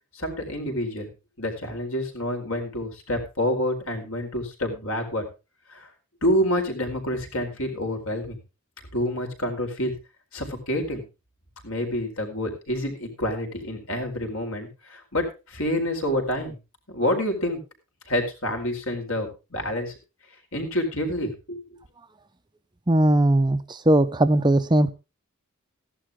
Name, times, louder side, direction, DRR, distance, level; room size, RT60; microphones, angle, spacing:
voice 1, 0.1-1.1 1.4-5.2 5.7-5.9 6.2-8.4 8.9-9.9 10.3-11.0 11.6-16.6 16.9-17.6 18.1-19.9 20.5-21.8, left 1 dB, 65° left, 4 dB, 4.5 m, -28 dB
voice 2, 22.9-24.9, right 1 dB, 20° right, 10 dB, 0.7 m, -19 dB
15.5 x 11.5 x 3.7 m, 0.30 s
head